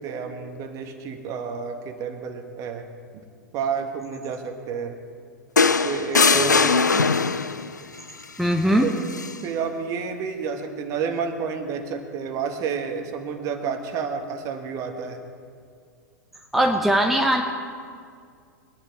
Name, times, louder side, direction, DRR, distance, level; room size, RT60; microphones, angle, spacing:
voice 1, 0.0-2.8 3.5-5.0 5.8-6.7 8.7-9.1 9.4-15.2, right 6 dB, 35° right, 6 dB, 1.6 m, -30 dB
sound 1, 5.6-7.7 9.1-9.3, left 4 dB, 85° left, 0.5 m, -20 dB
voice 2, 6.3-7.0 8.4-8.9 16.5-17.4, right 1 dB, ahead, 2 dB, 0.9 m, -21 dB
23.5 x 10.0 x 4.7 m, 2.2 s
figure-of-eight pair, 100°, 9 cm